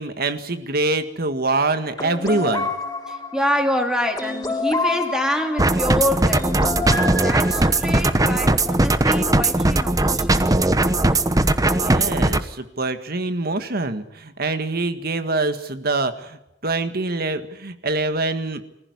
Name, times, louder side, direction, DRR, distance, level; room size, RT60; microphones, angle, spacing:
voice 1, 0.0-2.7 11.7-18.6, right 2 dB, 55° right, 9 dB, 1.8 m, -25 dB
sound 1, 2.0-8.2, left 3 dB, 20° left, 5.8 m, -28 dB
voice 2, 3.1-6.5 6.8-10.4, left 1 dB, 5° right, 4 dB, 2.7 m, -26 dB
sound 2, 5.6-12.4, right 2 dB, 20° right, 1.0 m, -19 dB
25.0 x 15.5 x 9.7 m, 0.84 s
head